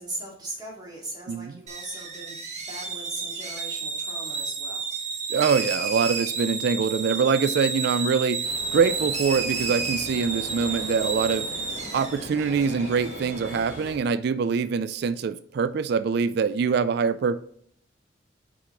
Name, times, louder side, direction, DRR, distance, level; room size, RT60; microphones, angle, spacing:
voice 1, 0.0-4.9, right 1 dB, 20° right, 2.2 m, -39 dB
sound 1, 1.7-13.9, right 4 dB, 40° right, 1.1 m, -32 dB
voice 2, 5.3-11.5 11.9-17.4, right 5 dB, 60° right, 0.3 m, -24 dB
sound 2, 8.4-14.0, left 1 dB, 50° left, 1.8 m, -40 dB
5.6 x 4.9 x 3.8 m
head